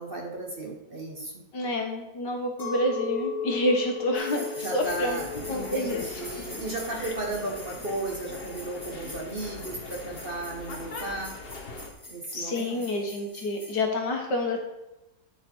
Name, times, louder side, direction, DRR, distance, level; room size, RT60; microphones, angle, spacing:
voice 1, 0.0-1.4 4.6-11.3 12.1-12.8, right 2 dB, 35° right, 0 dB, 1.2 m, -35 dB
voice 2, 1.5-6.2 12.3-14.6, left 1 dB, 75° left, 2 dB, 2.1 m, -28 dB
Chink clink, 2.6-8.0, left 3 dB, 55° left, 3.5 m, -36 dB
sound 1, 4.1-13.8, left 1 dB, 10° left, 3.2 m, -45 dB
sound 2, 4.8-11.9, left 3 dB, 40° left, 1.0 m, -41 dB
11.5 x 5.0 x 4.4 m, 0.96 s
omnidirectional pair, 1.9 m